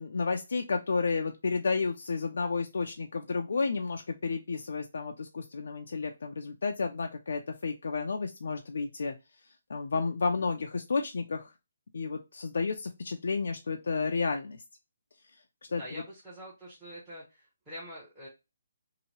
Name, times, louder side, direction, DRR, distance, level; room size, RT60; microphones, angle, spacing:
voice 1, 0.0-9.2 9.7-11.5 11.9-14.6 15.7-16.0, left 4 dB, 60° left, 4 dB, 0.4 m, -31 dB
voice 2, 15.8-18.3, equal, 5° right, -11 dB, 0.8 m, -45 dB
2.8 x 2.7 x 2.9 m, 0.25 s
hypercardioid pair, 175°, 0 cm